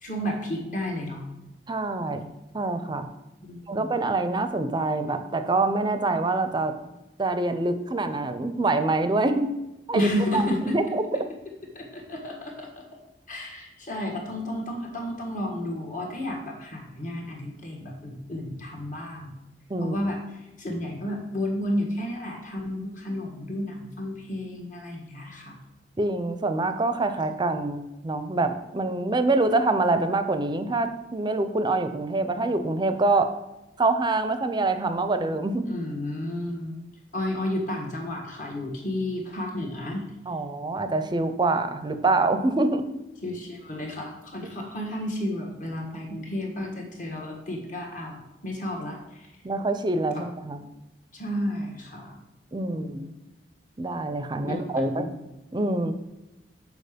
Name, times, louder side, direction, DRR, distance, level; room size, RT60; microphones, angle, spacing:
voice 1, 0.0-1.2 3.4-3.9 9.9-10.8 11.7-12.8 13.3-19.3 19.8-25.6 35.7-36.7 37.1-40.1 43.2-49.3 51.1-52.2 52.7-53.1 54.4-55.1, left 1 dB, 45° left, 1 dB, 1.5 m, -32 dB
voice 2, 1.7-3.1 3.7-6.7 7.2-9.5 9.9-11.0 19.7-19.9 26.0-33.3 33.8-35.7 40.3-42.8 49.4-50.6 52.5-53.1 53.8-55.1 55.5-55.9, right 2 dB, 25° right, 10 dB, 0.5 m, -25 dB
6.7 x 4.8 x 5.1 m, 0.96 s
head